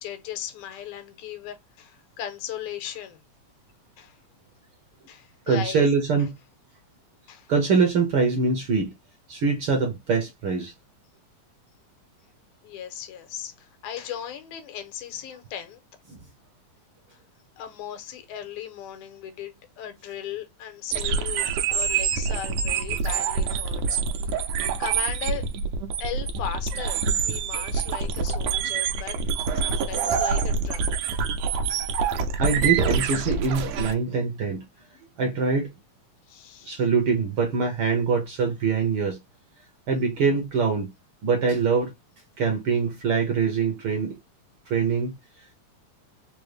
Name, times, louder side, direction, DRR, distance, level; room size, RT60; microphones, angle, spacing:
voice 1, 0.0-3.2 4.0-4.2 5.1-5.9 7.3-7.5 12.6-15.8 17.1-17.2 17.6-24.5 24.8-25.5 26.0-29.2 29.5-31.2 36.3-36.8, left 9 dB, 90° left, 2.3 m, -37 dB
voice 2, 5.5-6.3 7.5-8.9 9.3-10.7 16.1-16.2 32.4-34.6 35.2-35.7 36.7-39.2 39.9-40.9 41.2-41.9 42.4-44.2 44.7-45.2, right 5 dB, 70° right, 1.3 m, -23 dB
sound 1, 20.9-33.9, right 5 dB, 85° right, 2.1 m, -26 dB
5.2 x 2.0 x 3.2 m
omnidirectional pair, 3.3 m